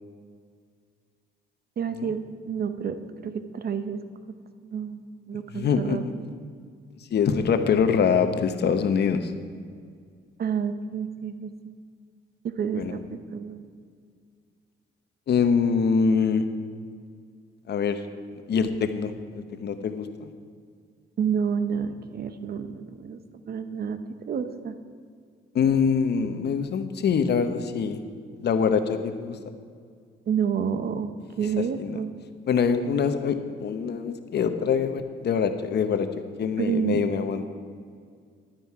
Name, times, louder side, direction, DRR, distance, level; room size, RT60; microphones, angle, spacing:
voice 1, 1.8-3.0 3.2-4.0 4.3-4.4 4.6-6.2 10.4-11.7 12.4-13.7 21.2-23.2 23.5-24.0 24.3-24.8 30.3-32.1 36.6-37.0, right 7 dB, 50° right, 10 dB, 0.9 m, -29 dB
voice 2, 5.5-6.1 7.0-9.3 12.7-13.0 15.3-16.4 17.7-18.0 18.5-20.3 25.5-28.0 28.4-29.4 31.8-32.0 32.5-36.1 36.4-37.4, left 6 dB, 55° left, 9 dB, 0.9 m, -24 dB
11.5 x 9.3 x 4.8 m, 2.1 s
cardioid pair, 90°, 20 cm